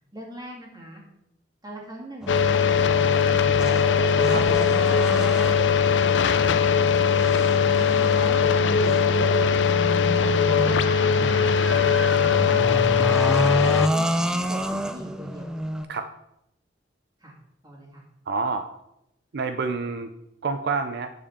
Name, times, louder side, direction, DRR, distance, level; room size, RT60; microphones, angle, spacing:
voice 1, 0.1-1.0 1.6-3.8 4.3-7.7 8.1-11.9 12.3-13.4 13.7-15.6 17.2-17.3 17.6-18.0, right 1 dB, 20° right, -1 dB, 2.2 m, -40 dB
sound 1, 2.2-15.9, equal, 5° right, 0.4 m, -30 dB
sound 2, 2.3-13.9, left 6 dB, 75° left, 0.5 m, -20 dB
voice 2, 18.3-18.7 19.3-20.1 20.4-21.1, right 4 dB, 65° right, 8 dB, 0.5 m, -27 dB
6.8 x 5.0 x 7.1 m, 0.82 s
head